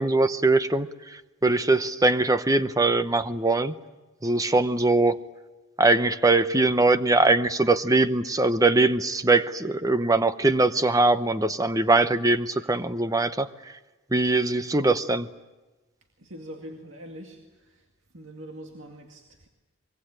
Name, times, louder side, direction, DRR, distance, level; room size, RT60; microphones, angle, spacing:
voice 1, 0.0-3.7 4.2-5.2 5.8-13.7 14.1-15.3, right 2 dB, 15° right, 12 dB, 0.8 m, -22 dB
voice 2, 16.2-17.9 18.1-19.5, equal, 60° right, 2 dB, 2.2 m, -43 dB
24.5 x 22.5 x 8.9 m, 1.1 s
head